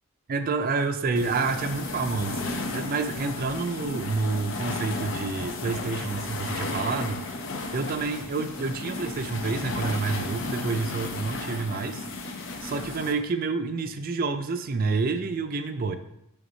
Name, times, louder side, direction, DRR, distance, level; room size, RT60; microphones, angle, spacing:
voice 1, 0.3-7.2 7.7-12.1 12.6-16.0, right 4 dB, 40° right, 8 dB, 0.4 m, -28 dB
sound 1, 1.2-13.1, left 2 dB, 65° left, 0.7 m, -34 dB
6.9 x 3.5 x 4.0 m, 0.81 s
head